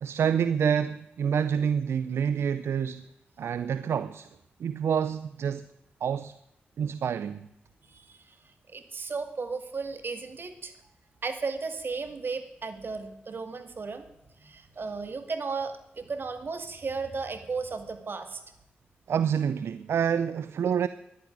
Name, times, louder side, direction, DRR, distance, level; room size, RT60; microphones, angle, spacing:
voice 1, 0.0-3.1 3.4-4.3 4.6-5.6 6.0-6.4 6.8-7.5 19.1-20.9, right 7 dB, 75° right, 0.5 m, -27 dB
voice 2, 7.8-8.3 8.7-10.7 11.2-14.0 14.4-18.4, right 4 dB, 55° right, 2.2 m, -35 dB
11.0 x 9.5 x 10.0 m
supercardioid pair, 45°, 4 cm